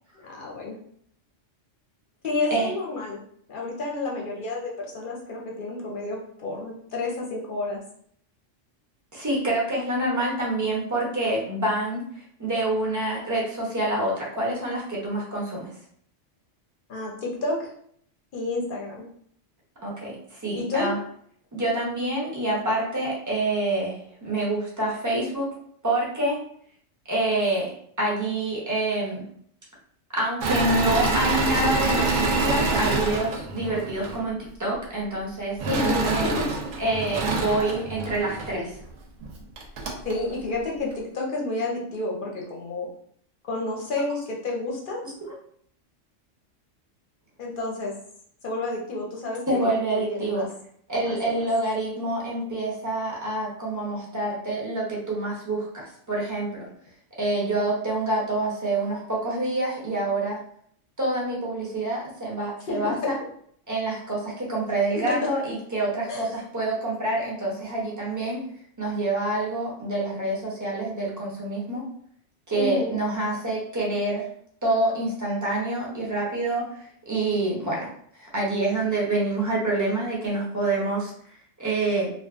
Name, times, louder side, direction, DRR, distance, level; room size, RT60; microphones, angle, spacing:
voice 1, 0.2-0.8 2.2-3.2 3.5-7.8 16.9-17.7 18.3-19.0 20.5-20.9 35.7-36.4 38.5-38.6 40.0-42.9 43.4-45.0 47.4-47.9 48.4-50.5 51.0-51.5 62.7-63.1 65.1-65.2 66.1-66.3 72.5-72.9, left 2 dB, 55° left, -2 dB, 0.6 m, -30 dB
voice 2, 9.1-15.7 19.8-21.0 21.5-25.5 25.8-26.4 27.1-29.2 30.1-36.3 36.8-38.7 49.5-50.5 50.9-56.7 57.2-60.4 61.0-63.2 63.7-68.4 68.8-71.9 72.5-74.3 74.6-82.1, right 2 dB, 25° right, -4 dB, 0.5 m, -27 dB
Engine / Mechanisms, 30.4-34.2 35.6-38.5 39.2-39.3 39.6-40.1, right 3 dB, 90° right, 1.0 m, -26 dB
2.6 x 2.3 x 2.4 m, 0.64 s
omnidirectional pair, 1.3 m